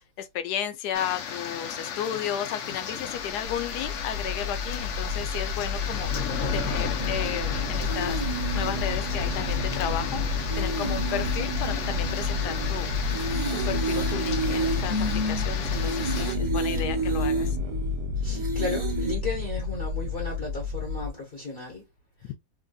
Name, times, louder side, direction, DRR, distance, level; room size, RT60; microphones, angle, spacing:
voice 1, 0.2-8.2 8.5-12.9 13.5-17.6, left 9 dB, 80° left, 1.1 m, -33 dB
sound 1, 0.9-16.3, left 7 dB, 65° left, 0.8 m, -34 dB
sound 2, 3.2-21.1, left 4 dB, 65° right, 0.6 m, -30 dB
sound 3, 7.0-19.1, right 3 dB, 25° right, 0.7 m, -32 dB
voice 2, 18.2-21.8 22.2-22.3, left 3 dB, 40° left, 1.0 m, -34 dB
3.3 x 2.6 x 2.2 m
omnidirectional pair, 1.7 m